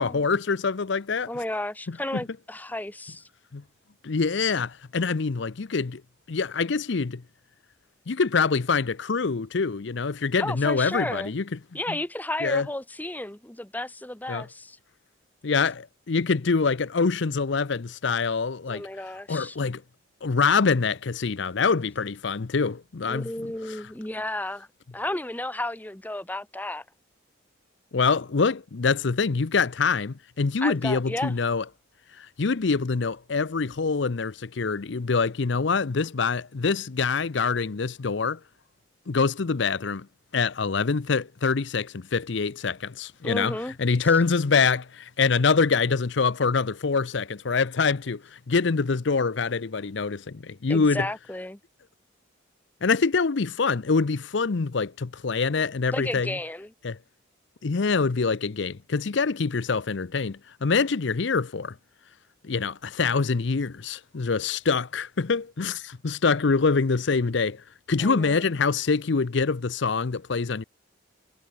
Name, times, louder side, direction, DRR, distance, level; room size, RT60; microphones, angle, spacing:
voice 1, 0.0-1.3 3.5-3.6 4.0-6.0 6.3-7.2 8.1-11.4 11.9-12.0 12.4-12.7 14.3-14.4 15.4-18.8 19.3-19.8 20.2-23.3 23.7-23.8 27.9-31.6 32.2-38.4 39.1-40.1 40.3-51.1 52.8-56.3 56.8-57.0 57.6-61.7 62.4-67.6 67.9-70.6, left 4 dB, 60° left, 0.6 m, -25 dB
voice 2, 1.3-3.3 10.4-11.3 11.7-14.8 18.7-19.6 23.1-24.7 24.9-26.8 30.6-31.3 43.2-43.8 44.0-44.1 50.7-51.6 55.9-56.7 68.0-68.5, left 1 dB, 10° left, 0.8 m, -33 dB
head